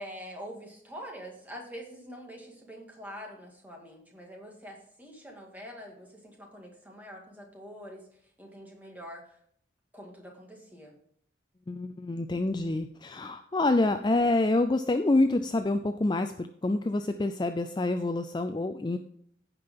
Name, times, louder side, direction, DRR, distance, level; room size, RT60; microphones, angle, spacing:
voice 1, 0.0-8.0 8.4-9.4 9.9-10.9, equal, 10° right, 0 dB, 2.1 m, -45 dB
voice 2, 11.7-19.0, left 2 dB, 25° left, 8 dB, 0.4 m, -27 dB
15.5 x 5.2 x 3.7 m, 0.66 s
head